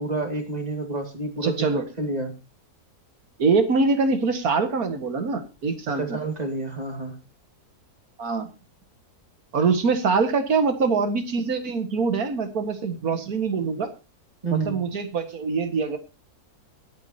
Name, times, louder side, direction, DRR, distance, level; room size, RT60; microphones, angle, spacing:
voice 1, 0.0-1.6 2.0-2.3 6.0-7.2 14.4-14.8, right 3 dB, 25° right, 5 dB, 2.2 m, -29 dB
voice 2, 1.4-1.8 3.4-6.2 8.2-8.5 9.5-13.9 14.5-16.0, right 4 dB, 65° right, 8 dB, 2.1 m, -24 dB
23.0 x 8.5 x 2.8 m, 0.29 s
omnidirectional pair, 1.7 m